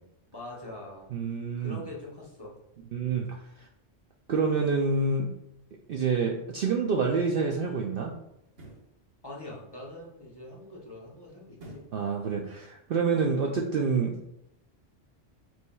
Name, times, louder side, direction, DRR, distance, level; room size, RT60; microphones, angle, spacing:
voice 1, 0.3-1.1 1.6-2.6 9.2-11.8 13.3-13.7, left 1 dB, 20° left, -4 dB, 0.9 m, -43 dB
voice 2, 1.1-1.8 2.9-3.3 3.6-3.7 4.3-5.3 5.9-8.1 11.9-14.2, right 4 dB, 60° right, 0 dB, 0.6 m, -27 dB
sound 1, 8.4-8.9 11.6-12.0 12.5-12.6, right 1 dB, 85° right, 1.8 m, -47 dB
6.9 x 3.2 x 2.3 m, 0.81 s
omnidirectional pair, 1.3 m